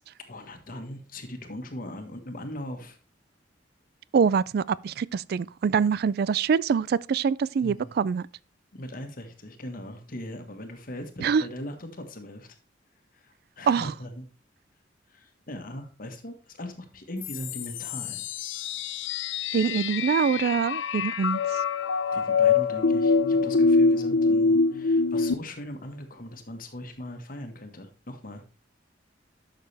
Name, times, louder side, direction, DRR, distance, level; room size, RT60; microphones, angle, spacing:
voice 1, 0.3-3.0 7.6-8.0 8.7-12.5 13.1-14.3 15.1-18.3 22.1-28.4, left 1 dB, 50° left, 1.5 m, -39 dB
voice 2, 4.1-8.3 11.2-11.4 13.7-13.9 19.5-21.4, right 6 dB, 55° right, 0.3 m, -24 dB
sound 1, 17.2-25.3, left 4 dB, 85° left, 0.7 m, -24 dB
11.5 x 6.7 x 3.4 m
head